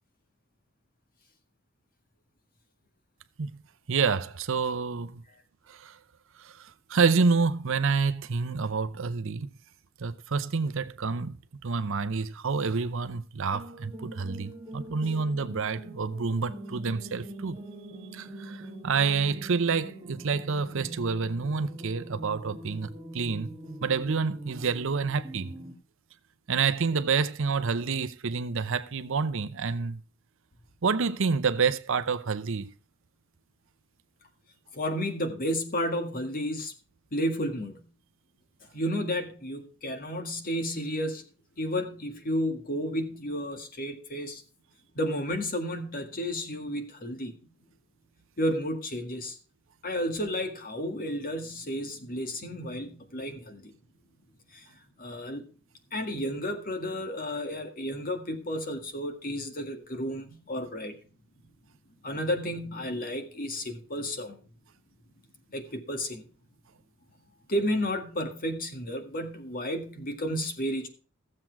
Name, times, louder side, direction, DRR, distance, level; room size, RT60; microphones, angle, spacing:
voice 1, 3.9-5.2 5.7-6.0 6.4-9.5 10.0-11.3 11.6-17.6 18.1-23.5 23.8-25.5 26.5-30.0 30.8-32.7, right 5 dB, 65° right, 0.7 m, -28 dB
sound 1, 13.5-25.7, right 1 dB, 20° right, 1.5 m, -43 dB
voice 2, 34.7-36.7 37.1-37.8 38.7-41.2 41.6-44.4 45.0-47.4 48.4-49.4 49.8-53.7 54.5-54.6 55.0-55.4 55.9-60.9 62.0-64.4 65.5-66.2 67.5-70.9, equal, 45° left, 1.9 m, -32 dB
15.0 x 7.5 x 4.6 m
head